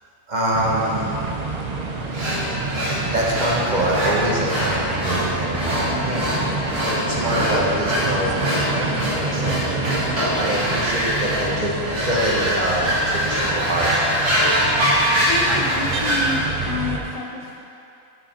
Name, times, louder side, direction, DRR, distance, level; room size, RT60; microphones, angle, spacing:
voice 1, 0.3-1.3 3.1-6.3 7.1-8.9 9.2-9.6 10.4-14.0 14.2-14.4, right 1 dB, 30° right, -4 dB, 1.1 m, -25 dB
sound 1, 0.5-17.0, right 3 dB, 55° right, 0.4 m, -28 dB
sound 2, 2.1-16.4, equal, 80° right, 3.0 m, -24 dB
voice 2, 15.2-17.6, left 3 dB, 60° left, -4 dB, 0.3 m, -30 dB
11.5 x 5.0 x 4.3 m, 2.7 s
omnidirectional pair, 1.7 m